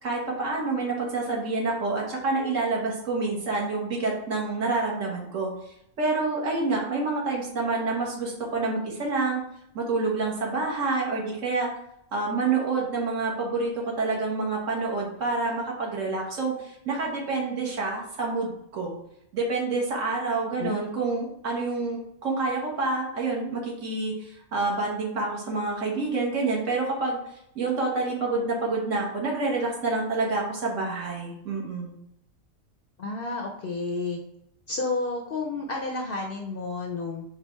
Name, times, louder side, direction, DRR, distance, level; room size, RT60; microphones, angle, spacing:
voice 1, 0.0-5.5 6.0-9.4 9.7-11.7 12.1-18.9 19.3-27.2 27.5-31.9, right 3 dB, 65° right, -3 dB, 1.6 m, -28 dB
voice 2, 33.0-34.2 34.7-37.2, left 3 dB, 60° left, 1 dB, 0.6 m, -31 dB
4.8 x 2.4 x 4.4 m, 0.75 s
omnidirectional pair, 1.4 m